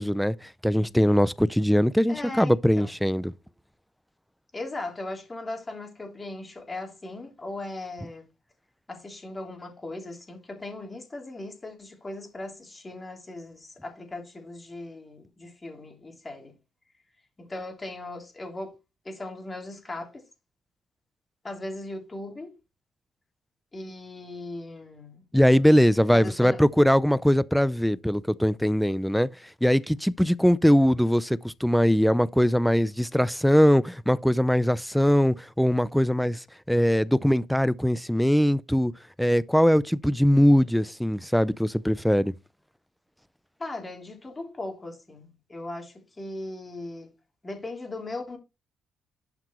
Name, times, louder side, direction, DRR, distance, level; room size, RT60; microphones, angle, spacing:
voice 1, 0.0-3.3 25.3-29.3 29.6-38.9 39.2-42.3, equal, ahead, 0.5 m, -21 dB
voice 2, 2.1-2.9 4.5-8.3 8.9-16.5 17.4-18.7 19.0-20.2 21.4-22.5 23.7-25.2 26.1-26.6 43.6-47.1 47.4-48.4, left 2 dB, 20° left, 3.2 m, -38 dB
11.5 x 6.0 x 3.1 m
cardioid pair, 120°, 0 cm